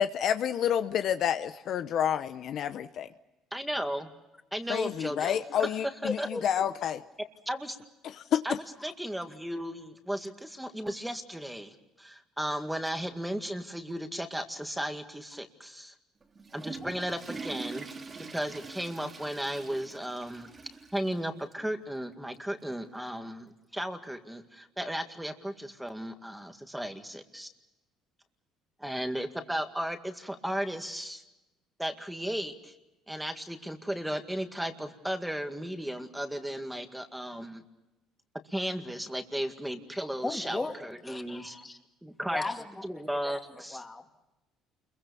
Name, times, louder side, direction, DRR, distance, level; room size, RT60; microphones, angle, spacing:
voice 1, 0.0-3.1 4.7-7.0 8.0-8.5, left 9 dB, 55° left, 10 dB, 0.9 m, -29 dB
voice 2, 3.5-4.1 4.5-5.7 6.0-6.3 7.5-7.8 8.4-8.6 8.8-15.9 16.5-17.9 18.3-20.5 20.9-27.5 28.8-31.2 31.8-32.7 33.1-37.6 38.5-41.6 42.0-42.4 42.8-43.8, equal, 5° right, 6 dB, 2.0 m, -35 dB
voice 3, 6.0-6.5 16.8-16.9 40.2-40.8 41.0-41.8 42.3-43.4 43.7-44.2, left 3 dB, 15° left, 5 dB, 2.5 m, -36 dB
Water / Toilet flush, 16.2-21.2 21.5-21.6 22.3-22.4 23.7-23.8, right 4 dB, 25° right, 2.4 m, -44 dB
29.5 x 23.0 x 7.0 m, 0.99 s
cardioid pair, 125°, 0 cm